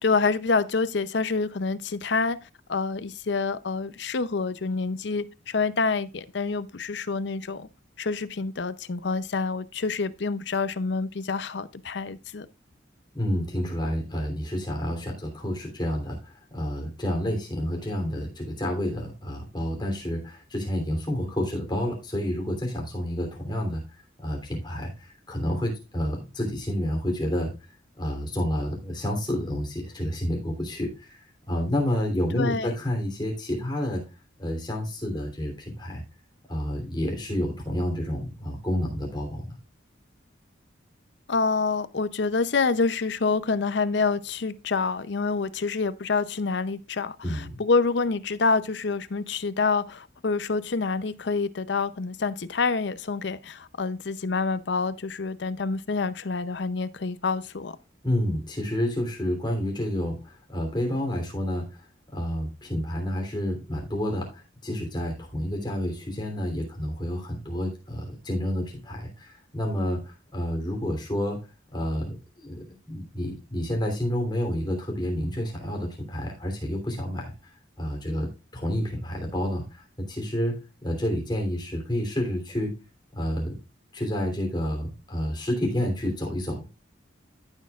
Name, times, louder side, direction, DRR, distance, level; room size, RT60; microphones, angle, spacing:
voice 1, 0.0-2.4 2.7-7.7 8.0-12.5 32.3-32.7 41.3-57.8, left 4 dB, 65° left, 0.6 m, -27 dB
voice 2, 13.1-23.8 24.2-27.5 27.9-31.2 31.5-34.0 34.4-36.0 36.5-39.5 47.2-47.6 58.0-61.8 62.1-71.4 71.7-77.3 77.8-82.8 83.1-83.6 83.9-86.7, equal, 20° left, 3.1 m, -29 dB
15.0 x 6.4 x 2.4 m
head